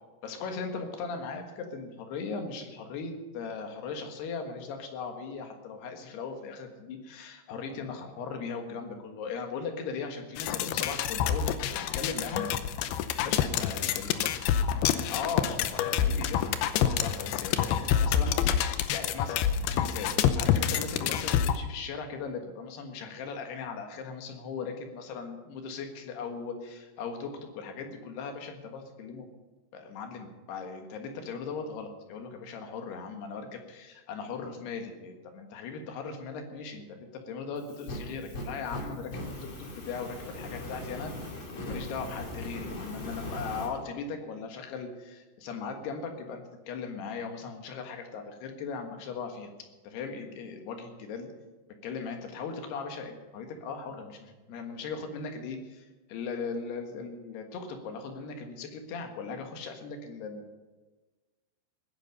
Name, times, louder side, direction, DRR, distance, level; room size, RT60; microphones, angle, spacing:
voice 1, 0.2-12.4 13.2-14.1 15.1-29.3 29.7-39.3 39.7-41.1 41.6-49.5 49.8-51.3 51.8-60.4, left 5 dB, 65° left, 5 dB, 3.3 m, -38 dB
sound 1, 10.4-21.6, left 9 dB, 85° left, 2.2 m, -27 dB
Fire, 37.6-43.7, left 1 dB, 35° left, 2.6 m, -39 dB
19.5 x 10.5 x 5.5 m, 1.2 s
omnidirectional pair, 5.4 m